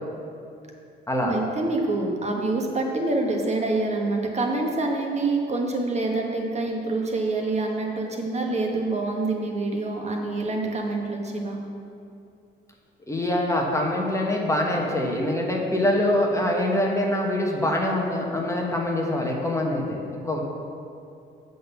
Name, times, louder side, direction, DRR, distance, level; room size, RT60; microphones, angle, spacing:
voice 1, 1.2-11.6, right 2 dB, 35° right, 0 dB, 1.3 m, -26 dB
voice 2, 13.1-20.0 20.2-20.4, left 1 dB, 15° left, -1 dB, 1.2 m, -24 dB
7.7 x 4.0 x 6.8 m, 2.5 s
cardioid pair, 90°, 20 cm